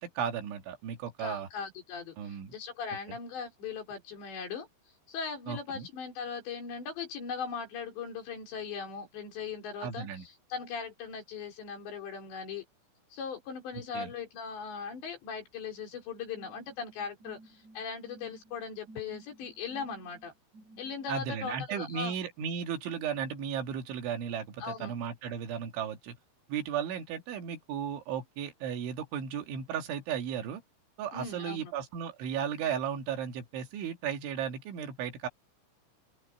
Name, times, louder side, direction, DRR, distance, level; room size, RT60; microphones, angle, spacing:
voice 1, 0.0-1.5 2.2-2.5 5.5-5.9 9.8-10.2 13.9-14.1 21.1-26.2 26.5-30.6 31.0-35.3, right 8 dB, 70° right, 4.5 m, -35 dB
voice 2, 1.2-4.7 5.1-12.6 13.1-20.3 20.8-22.1 24.6-24.9 31.1-31.7, left 6 dB, 60° left, 6.5 m, -39 dB
sound 1, 16.4-21.2, right 2 dB, 40° right, 4.3 m, -55 dB
open air
omnidirectional pair, 5.7 m